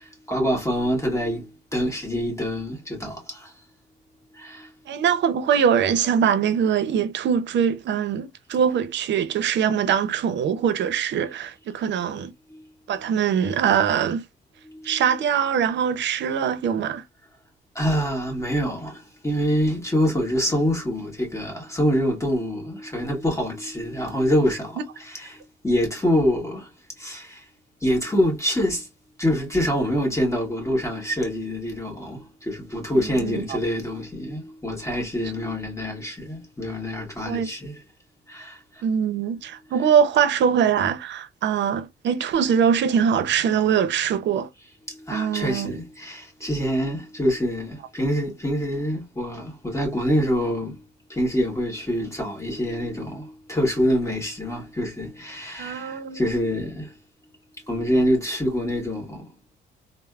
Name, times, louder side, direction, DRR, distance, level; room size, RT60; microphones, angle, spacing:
voice 1, 0.0-3.5 4.3-4.7 12.5-12.6 14.7-14.9 17.7-26.7 27.0-27.4 27.8-28.9 29.2-37.8 38.3-38.8 44.9-50.8 51.1-56.9 57.7-59.3, equal, 15° left, 1.3 m, -25 dB
voice 2, 4.9-12.3 12.9-14.2 14.8-17.0 24.8-24.9 33.0-33.6 37.3-37.5 38.8-44.5 45.1-45.8 55.6-56.2, right 8 dB, 65° right, 0.6 m, -22 dB
3.1 x 2.0 x 2.3 m
cardioid pair, 90°, 20 cm